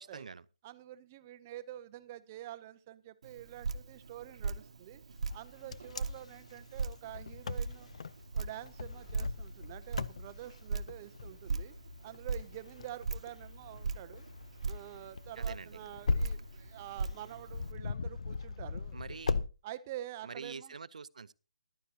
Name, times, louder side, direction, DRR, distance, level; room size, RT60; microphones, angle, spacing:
voice 1, 0.1-0.4 15.4-15.8 18.9-19.4 20.2-21.3, right 5 dB, 80° right, 0.6 m, -45 dB
voice 2, 0.6-5.0 5.3-7.9 8.3-11.7 12.0-14.3 14.6-19.2 19.6-20.7, right 13 dB, 20° right, 0.6 m, -47 dB
Drip, 3.2-17.7, right 4 dB, 60° right, 1.0 m, -40 dB
Wind, 5.3-19.5, left 4 dB, 60° left, 0.5 m, -39 dB
14.0 x 11.5 x 2.8 m
hypercardioid pair, 175°, 4 cm